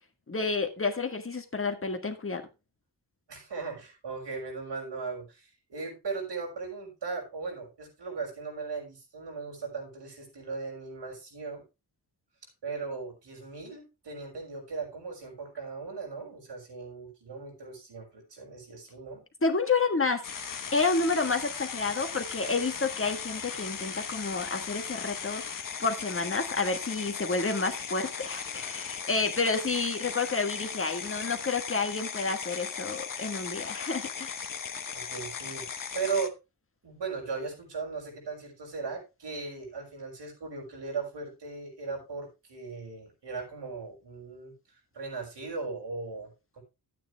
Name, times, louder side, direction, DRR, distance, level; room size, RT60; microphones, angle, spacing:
voice 1, 0.3-2.5 19.4-20.2 20.7-34.4, left 4 dB, 30° left, 1.5 m, -30 dB
voice 2, 3.3-11.6 12.6-19.2 34.9-36.3 36.8-44.5 44.9-46.6, right 4 dB, 90° right, 6.3 m, -38 dB
sound 1, 20.2-36.3, left 6 dB, 50° left, 1.1 m, -37 dB
12.5 x 9.2 x 3.4 m
wide cardioid pair, 145°, 41 cm